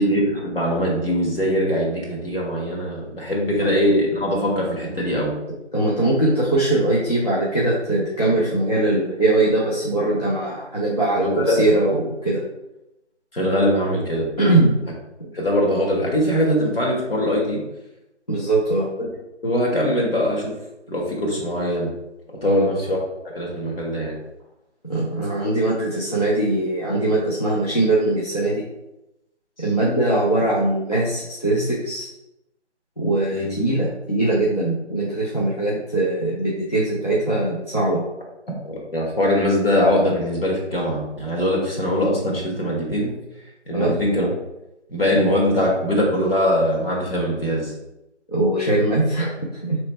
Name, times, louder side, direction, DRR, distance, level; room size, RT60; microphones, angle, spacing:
voice 1, 0.0-5.3 11.2-11.5 13.3-14.3 15.3-17.6 19.4-20.5 20.9-21.9 22.4-23.0 23.3-24.1 33.3-33.5 38.6-43.1 43.7-44.3 44.9-47.7, equal, 55° left, -3 dB, 1.5 m, -22 dB
voice 2, 5.7-12.4 14.4-14.7 15.2-15.3 18.3-18.9 22.4-22.7 24.8-28.6 29.6-32.1 33.0-38.0 43.7-43.9 48.3-49.8, right 2 dB, 35° left, -7 dB, 0.6 m, -21 dB
3.2 x 3.2 x 4.4 m, 0.91 s
figure-of-eight pair, 170°, 36 cm